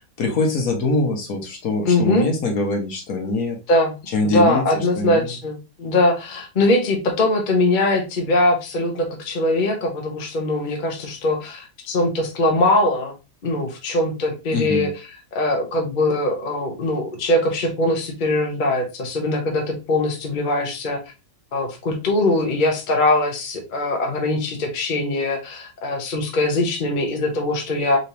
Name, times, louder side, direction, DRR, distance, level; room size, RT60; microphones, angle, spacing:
voice 1, 0.2-3.6 4.1-5.3 14.5-14.9, left 2 dB, 60° left, 2 dB, 1.4 m, -23 dB
voice 2, 1.9-2.3 3.7-3.9 4.3-13.1 13.4-14.9 15.3-21.0 21.5-28.0, left 2 dB, 35° left, 2 dB, 0.9 m, -21 dB
4.0 x 3.4 x 2.8 m, 0.28 s
omnidirectional pair, 1.8 m